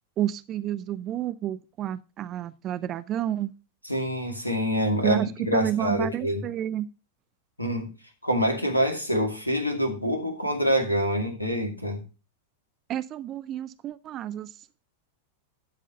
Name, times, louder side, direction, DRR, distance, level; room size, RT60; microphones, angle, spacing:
voice 1, 0.2-3.5 5.0-6.9 12.9-14.6, right 11 dB, 30° right, 0.5 m, -30 dB
voice 2, 3.9-6.4 7.6-7.9 8.2-12.0, equal, 85° left, 2.2 m, -26 dB
11.5 x 4.9 x 5.6 m
figure-of-eight pair, 90°, 0 cm